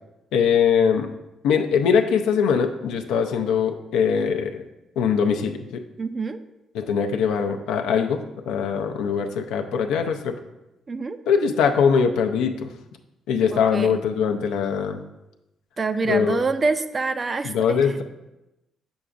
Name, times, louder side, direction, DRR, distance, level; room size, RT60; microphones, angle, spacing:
voice 1, 0.3-1.1 1.4-4.6 5.0-5.8 6.7-8.2 8.5-10.3 11.3-12.7 13.3-15.0 16.1-16.4 17.4-18.0, left 6 dB, 85° left, 4 dB, 0.5 m, -22 dB
voice 2, 6.0-6.4 10.9-11.2 13.5-14.0 15.8-18.0, right 4 dB, 40° right, 11 dB, 0.4 m, -26 dB
6.8 x 6.1 x 2.4 m, 0.94 s
supercardioid pair, 65°, 0 cm